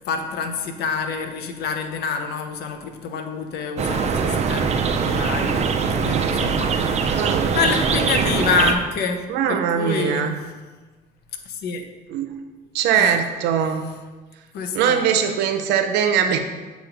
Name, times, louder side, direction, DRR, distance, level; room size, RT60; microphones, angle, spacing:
voice 1, 0.1-5.6 6.0-10.5 11.5-11.9 12.9-13.2 14.5-15.1, left 5 dB, 75° left, 5 dB, 0.7 m, -27 dB
sound 1, 3.8-8.7, right 5 dB, 40° right, 0.5 m, -22 dB
voice 2, 7.1-7.6 9.3-10.3 12.1-12.3 12.7-13.9 14.7-16.4, right 8 dB, 85° right, 6 dB, 0.7 m, -21 dB
6.9 x 3.1 x 5.1 m, 1.3 s
cardioid pair, 110°, 17 cm